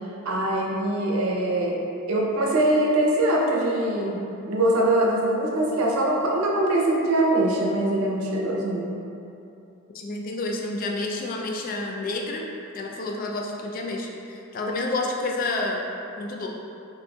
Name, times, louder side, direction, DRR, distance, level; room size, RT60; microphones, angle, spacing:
voice 1, 0.2-1.8 2.1-8.9, right 1 dB, 85° right, -2 dB, 0.6 m, -23 dB
voice 2, 9.9-12.5 12.7-15.9 16.2-16.5, left 2 dB, 40° left, 0 dB, 0.3 m, -29 dB
4.1 x 2.6 x 2.2 m, 2.7 s
head